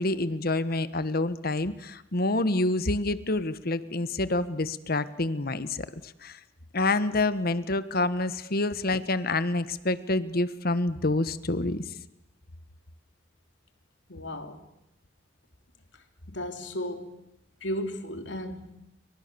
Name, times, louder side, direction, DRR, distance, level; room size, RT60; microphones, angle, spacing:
voice 1, 0.0-6.4 6.7-11.9, left 2 dB, 55° left, 1.4 m, -27 dB
voice 2, 14.1-14.6 16.3-17.1 17.6-18.7, equal, 70° left, 3.3 m, -34 dB
29.5 x 25.0 x 7.0 m
head